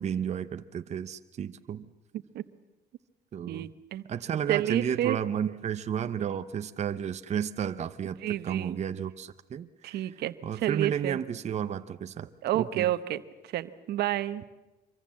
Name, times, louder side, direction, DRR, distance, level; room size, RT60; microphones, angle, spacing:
voice 1, 0.0-1.9 3.3-3.7 4.1-10.1 10.4-12.3 12.5-12.9, right 8 dB, 40° right, 10 dB, 0.8 m, -32 dB
voice 2, 3.5-4.0 4.5-5.2 8.2-8.8 9.8-11.2 12.4-13.2 13.5-14.4, right 13 dB, 75° right, 12 dB, 1.1 m, -30 dB
25.5 x 23.5 x 7.6 m, 1.1 s
cardioid pair, 110°, 17 cm